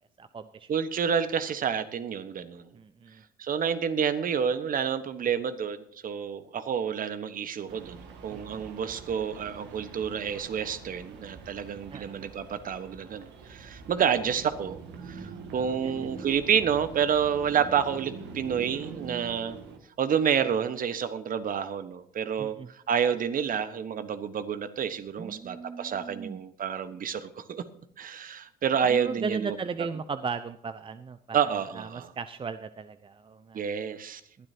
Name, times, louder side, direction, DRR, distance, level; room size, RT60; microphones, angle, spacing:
voice 1, 0.2-0.7 2.7-3.2 8.3-8.7 11.9-12.2 15.5-16.1 22.4-22.7 25.2-26.4 28.9-31.4 31.7-33.6 34.4-34.5, right 5 dB, 25° right, 12 dB, 0.7 m, -37 dB
voice 2, 0.7-2.7 3.4-14.8 15.0-19.6 20.0-27.6 28.0-29.5 31.3-32.1 33.5-34.2, right 7 dB, 45° right, 12 dB, 1.3 m, -29 dB
sound 1, 7.7-19.8, right 5 dB, 65° right, 2.1 m, -44 dB
20.0 x 12.0 x 2.9 m, 0.69 s
hypercardioid pair, 65°, 20 cm